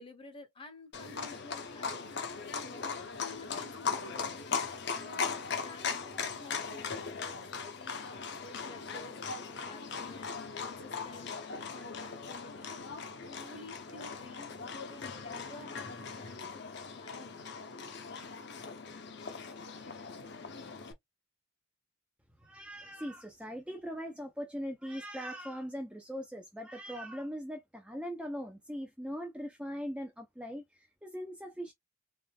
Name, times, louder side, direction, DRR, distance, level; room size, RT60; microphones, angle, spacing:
voice 1, 0.0-2.2 2.6-4.5 5.0-7.0 7.4-9.2 9.6-17.5, left 2 dB, 25° left, 0.9 m, -52 dB
Livestock farm animals working animals, 0.9-20.9, left 5 dB, 50° left, 0.8 m, -39 dB
voice 2, 22.4-30.6 31.0-31.7, equal, 5° right, 0.5 m, -40 dB
3.7 x 3.5 x 2.3 m
head